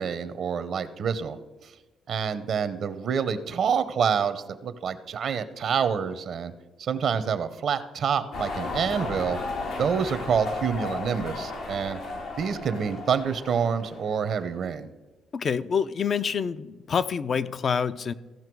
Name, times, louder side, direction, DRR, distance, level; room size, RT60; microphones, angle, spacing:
voice 1, 0.0-1.4 1.6-1.7 2.1-6.5 6.8-9.4 9.8-12.0 12.4-14.9, right 7 dB, 60° right, 13 dB, 0.7 m, -27 dB
sound 1, 8.3-14.5, left 3 dB, 85° left, 2.1 m, -35 dB
voice 2, 15.3-18.1, left 6 dB, 50° left, 14 dB, 0.5 m, -27 dB
16.0 x 5.7 x 4.6 m, 1.2 s
cardioid pair, 90°, 0 cm